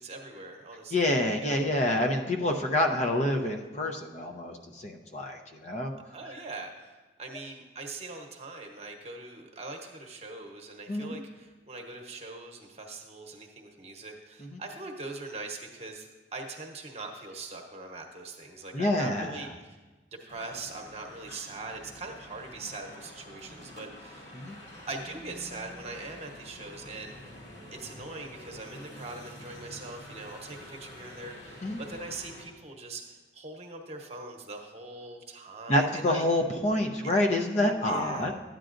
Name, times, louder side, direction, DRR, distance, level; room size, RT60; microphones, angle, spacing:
voice 1, 0.0-1.6 6.1-19.8 20.2-24.3 24.9-27.3 27.7-36.2 37.0-37.1 37.8-38.3, right 3 dB, 35° right, 2 dB, 1.0 m, -42 dB
voice 2, 0.9-5.9 10.9-11.2 14.5-14.6 18.7-19.3 24.4-24.6 31.6-31.8 35.7-38.3, left 1 dB, 40° left, 3 dB, 0.7 m, -27 dB
sound 1, 20.3-32.5, left 1 dB, 85° left, 2.3 m, -48 dB
13.0 x 9.0 x 2.5 m, 1.2 s
head